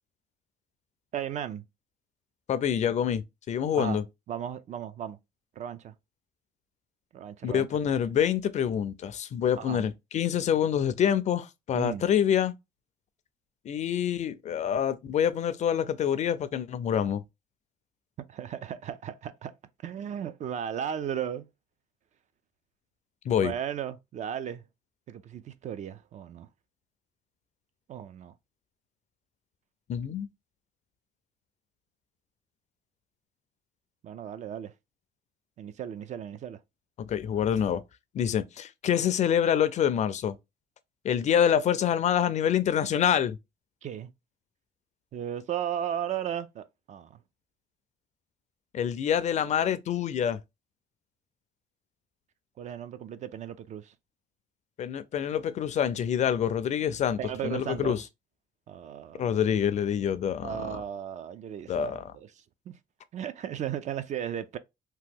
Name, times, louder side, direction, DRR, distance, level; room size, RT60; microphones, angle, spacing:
voice 1, 1.1-1.6 3.7-4.0 4.3-5.2 5.6-5.9 7.1-7.7 9.6-9.8 11.7-12.0 18.2-19.5 19.8-21.5 23.4-24.6 25.1-26.5 27.9-28.3 34.0-34.7 35.6-36.6 43.8-44.1 45.1-47.2 52.6-53.9 57.2-58.0 58.7-59.4 60.4-62.3 62.7-62.8 63.1-64.6, right 9 dB, 45° right, 0.4 m, -35 dB
voice 2, 2.5-4.0 7.4-12.5 13.7-17.2 23.3-23.5 29.9-30.3 37.1-37.8 38.1-40.4 41.0-43.4 48.7-50.4 54.8-58.0 59.2-60.7 61.7-62.0, left 9 dB, 45° left, 0.4 m, -26 dB
2.9 x 2.1 x 3.5 m
cardioid pair, 110°, 17 cm